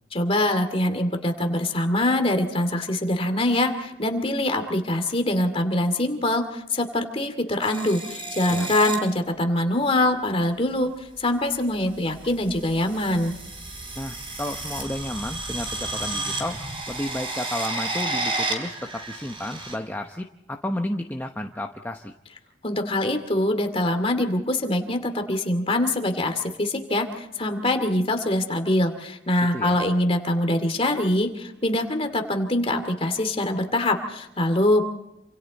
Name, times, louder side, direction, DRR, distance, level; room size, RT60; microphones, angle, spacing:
voice 1, 0.1-10.9 11.2-13.3 22.6-34.8, left 1 dB, 30° left, 6 dB, 2.4 m, -24 dB
sound 1, 7.6-8.9 10.2-10.5 11.5-19.7, right 2 dB, 30° right, 4.2 m, -32 dB
voice 2, 14.0-16.6 16.9-22.1 29.5-29.8, left 1 dB, 10° left, 3 dB, 0.9 m, -32 dB
28.0 x 27.0 x 4.2 m, 0.88 s
head